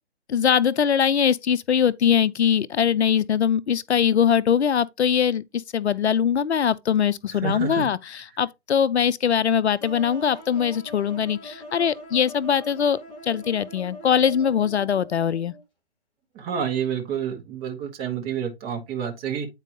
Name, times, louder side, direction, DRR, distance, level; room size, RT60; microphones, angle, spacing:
voice 1, 0.3-5.4 5.7-15.5, left 8 dB, 75° left, 0.6 m, -22 dB
voice 2, 7.4-7.9 16.3-19.5, right 8 dB, 15° right, 1.0 m, -29 dB
sound 1, 9.8-15.6, left 1 dB, 15° left, 2.1 m, -42 dB
9.0 x 4.6 x 3.2 m
figure-of-eight pair, 140°, 34 cm